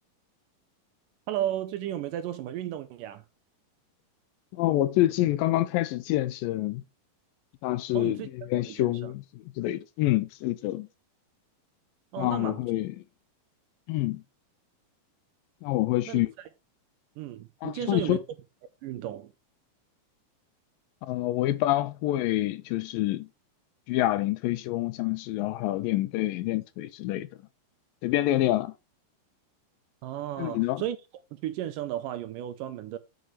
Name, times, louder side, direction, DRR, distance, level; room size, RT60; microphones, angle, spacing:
voice 1, 1.3-3.2 7.9-9.1 12.1-12.6 16.1-16.5 17.2-18.2 18.8-19.3 30.0-31.0 31.3-33.0, right 12 dB, 80° right, 2.0 m, -34 dB
voice 2, 4.5-6.8 7.6-8.2 8.5-10.9 12.2-13.0 13.9-14.2 15.6-16.3 17.6-18.2 21.0-23.3 23.9-27.3 28.0-28.7 30.4-30.8, left 15 dB, 80° left, 2.2 m, -27 dB
8.0 x 4.7 x 4.2 m
omnidirectional pair, 4.2 m